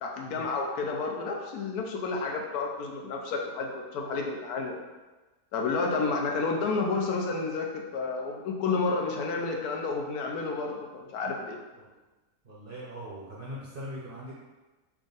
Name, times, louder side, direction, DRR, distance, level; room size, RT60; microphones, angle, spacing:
voice 1, 0.0-4.8 5.5-11.6, left 4 dB, 85° left, 1 dB, 1.1 m, -30 dB
voice 2, 12.4-14.3, equal, 50° right, -6 dB, 0.7 m, -41 dB
3.5 x 2.5 x 3.8 m, 1.2 s
omnidirectional pair, 1.6 m